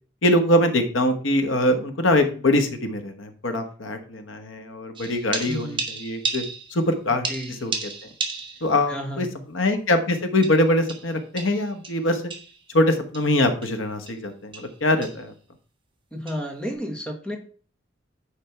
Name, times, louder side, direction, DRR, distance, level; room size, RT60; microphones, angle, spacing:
voice 1, 0.2-6.4 6.7-7.9 8.6-12.2 12.7-15.3, left 1 dB, 90° left, 7 dB, 1.2 m, -23 dB
sound 1, 4.9-6.9 7.2-8.8 9.2-9.3 10.4-12.6 13.1-13.3 13.6-13.8 14.1-14.3 14.5-14.8 15.0-15.3 16.3-16.5, right 4 dB, 25° right, 1.3 m, -33 dB
voice 2, 5.4-5.8 7.3-7.5 8.9-9.4 16.1-17.4, equal, 5° left, 2 dB, 1.3 m, -32 dB
9.8 x 3.4 x 5.8 m, 0.41 s
head